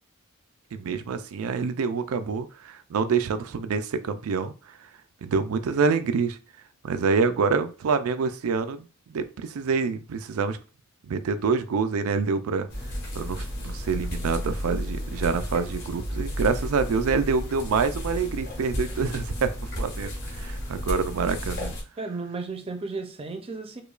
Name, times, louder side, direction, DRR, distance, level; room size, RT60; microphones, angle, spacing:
voice 1, 0.7-4.5 5.2-6.4 6.8-10.6 11.0-12.7 13.1-21.7, right 5 dB, 80° right, 0.4 m, -26 dB
sound 1, 12.7-21.8, equal, 55° left, 1.3 m, -32 dB
voice 2, 22.0-23.8, right 3 dB, 25° right, 0.5 m, -34 dB
4.8 x 2.2 x 2.4 m
head